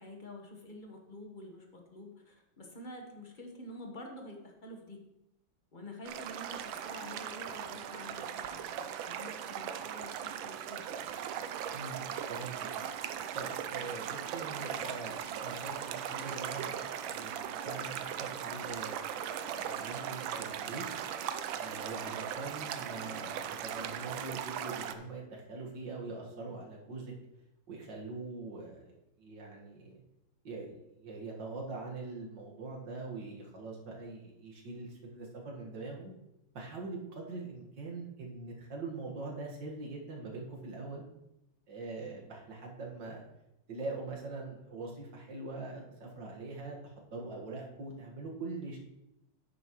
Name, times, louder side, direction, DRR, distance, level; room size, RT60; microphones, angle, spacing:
voice 1, 0.0-5.0 5.7-10.8, left 1 dB, 30° left, 2 dB, 1.1 m, -48 dB
sound 1, 6.1-24.9, right 9 dB, 75° right, 1.4 m, -39 dB
voice 2, 13.3-17.3 17.6-19.0 19.6-20.8 21.6-27.1 27.7-30.0 30.4-36.1 36.5-41.0 41.7-43.2 43.7-48.8, right 3 dB, 60° right, -1 dB, 2.3 m, -43 dB
10.0 x 8.6 x 3.1 m, 0.87 s
omnidirectional pair, 2.2 m